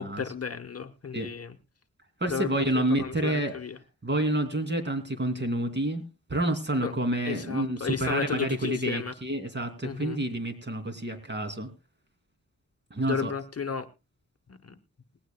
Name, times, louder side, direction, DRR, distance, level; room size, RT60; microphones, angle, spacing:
voice 1, 0.0-1.6 2.3-3.8 6.8-6.9 7.2-9.1 9.8-10.2 13.0-13.9 14.5-14.8, left 6 dB, 45° left, 8 dB, 1.0 m, -33 dB
voice 2, 2.2-3.5 4.0-6.0 6.3-11.7 12.9-13.3, right 1 dB, 30° right, 7 dB, 2.8 m, -28 dB
19.0 x 16.5 x 2.3 m, 0.28 s
cardioid pair, 80°, 35 cm